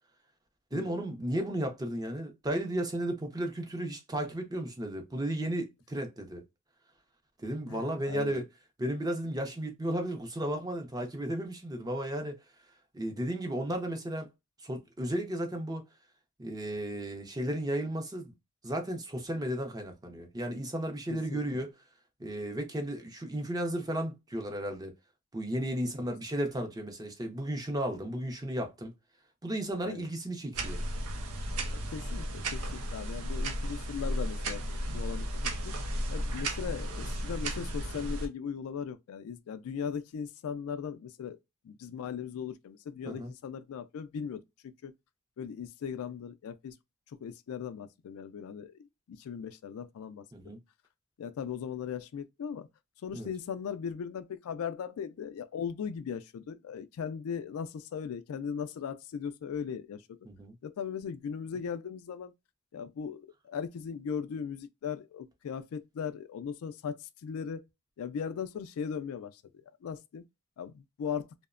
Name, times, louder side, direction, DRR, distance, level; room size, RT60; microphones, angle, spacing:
voice 1, 0.7-6.4 7.4-8.5 8.8-12.4 12.9-14.3 14.6-15.8 16.4-18.3 18.6-21.7 22.2-24.9 25.3-28.9 29.4-30.8 43.0-43.3 50.3-50.6 53.1-53.3 60.2-60.5, right 1 dB, 15° right, 0.5 m, -34 dB
voice 2, 7.7-8.4 21.1-21.7 26.1-26.2 29.8-30.1 31.7-35.7 36.1-41.4 41.6-44.9 45.4-46.7 47.2-48.7 49.1-50.2 51.2-52.7 53.0-60.0 60.6-62.3 62.7-67.6 68.0-70.2 70.6-71.3, left 7 dB, 70° left, 0.3 m, -38 dB
sound 1, 30.5-38.3, right 1 dB, 90° right, 0.6 m, -34 dB
2.8 x 2.1 x 2.3 m
head